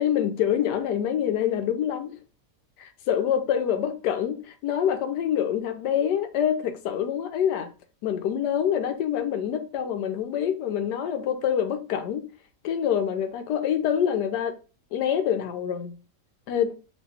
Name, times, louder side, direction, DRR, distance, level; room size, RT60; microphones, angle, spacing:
voice 1, 0.0-2.2 2.8-7.7 8.0-12.3 12.6-14.5 14.9-16.0 16.5-16.8, left 9 dB, 90° left, 1.2 m, -26 dB
3.1 x 2.7 x 3.2 m
omnidirectional pair, 1.7 m